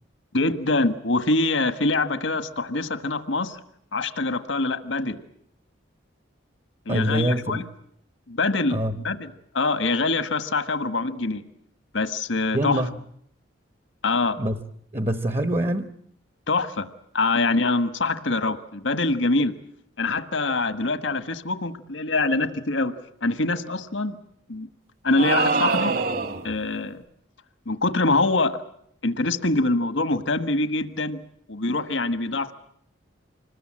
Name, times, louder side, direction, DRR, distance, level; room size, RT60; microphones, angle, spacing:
voice 1, 0.3-3.6 3.9-5.2 6.8-7.6 8.3-8.8 9.0-11.4 11.9-12.8 14.0-14.4 16.5-16.9 17.1-19.5 20.0-22.9 23.2-24.2 24.5-24.7 25.0-26.0 26.4-27.0 27.6-28.6 29.0-31.2 31.5-32.5, left 2 dB, 75° left, 11 dB, 1.5 m, -24 dB
voice 2, 6.9-7.6 8.7-9.0 12.5-13.0 14.4-14.6 14.9-15.9, right 1 dB, 30° right, 10 dB, 1.0 m, -24 dB
sound 1, 25.2-26.5, right 4 dB, 50° right, 1.7 m, -24 dB
26.0 x 20.5 x 8.8 m, 0.70 s
head